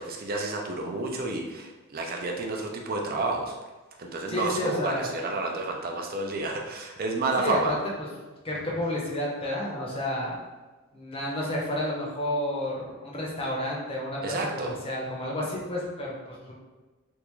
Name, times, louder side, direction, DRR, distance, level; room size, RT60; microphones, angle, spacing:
voice 1, 0.0-3.6 4.0-7.7 14.2-14.8, right 3 dB, 45° right, 1 dB, 0.5 m, -30 dB
voice 2, 4.3-5.1 7.4-7.7 8.4-10.4 10.9-14.2 14.5-16.5, left 1 dB, 25° left, -4 dB, 0.7 m, -30 dB
3.5 x 2.4 x 3.0 m, 1.2 s
head